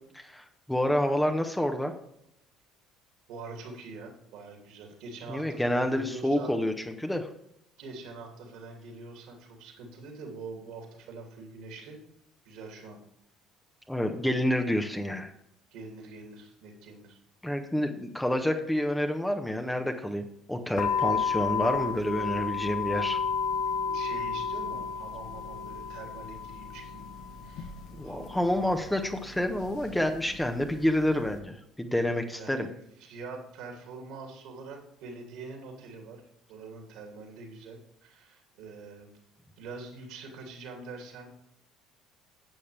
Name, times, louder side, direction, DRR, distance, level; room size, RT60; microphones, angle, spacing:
voice 1, 0.1-1.9 5.3-7.3 13.9-15.3 17.4-23.2 27.9-32.7, left 1 dB, 5° left, 5 dB, 1.2 m, -28 dB
voice 2, 3.3-6.6 7.8-12.0 12.4-13.0 15.7-17.2 23.8-27.1 27.4-28.4 32.3-36.2 36.5-39.1 39.6-41.3, right 3 dB, 60° right, 2 dB, 2.9 m, -44 dB
sound 1, 20.8-31.4, left 6 dB, 55° left, 1.3 m, -33 dB
12.0 x 8.5 x 3.4 m, 0.78 s
figure-of-eight pair, 55°, 0 cm